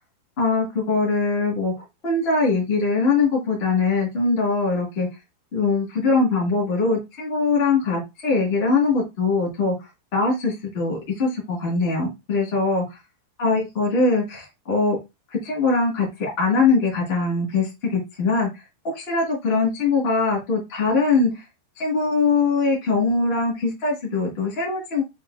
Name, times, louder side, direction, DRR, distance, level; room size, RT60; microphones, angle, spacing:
voice 1, 0.4-1.7 2.0-5.1 5.5-9.7 10.1-12.8 13.4-15.0 15.3-21.4 21.8-25.0, left 3 dB, 40° left, -2 dB, 0.8 m, -22 dB
7.0 x 2.7 x 2.6 m, 0.23 s
omnidirectional pair, 4.8 m